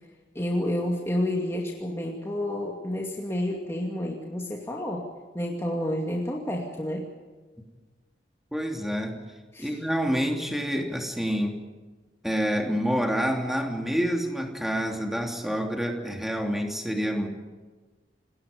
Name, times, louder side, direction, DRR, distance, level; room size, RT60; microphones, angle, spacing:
voice 1, 0.3-5.1 5.3-7.1 9.5-9.8, left 1 dB, 15° left, -1 dB, 2.4 m, -30 dB
voice 2, 8.5-9.2 9.6-11.5 12.2-17.3, equal, ahead, 2 dB, 3.0 m, -27 dB
28.5 x 20.5 x 5.3 m, 1.3 s
head